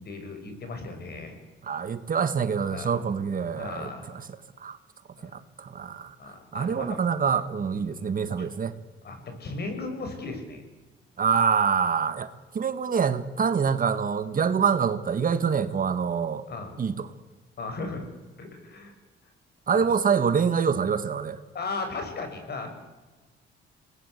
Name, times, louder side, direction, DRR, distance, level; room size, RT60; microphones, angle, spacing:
voice 1, 0.0-1.4 2.7-2.9 3.6-4.1 5.2-5.4 6.2-7.0 7.8-8.5 9.0-10.6 16.5-16.8 17.6-18.1 18.4-18.9 19.7-19.9 21.5-22.7, left 3 dB, 55° left, 6 dB, 6.8 m, -36 dB
voice 2, 1.6-4.2 4.6-4.8 5.2-6.1 6.5-8.7 11.2-12.3 12.5-16.5 16.8-17.1 19.7-21.4, right 6 dB, 45° right, 11 dB, 1.8 m, -25 dB
27.0 x 20.0 x 8.3 m, 1.2 s
cardioid pair, 90°, 20 cm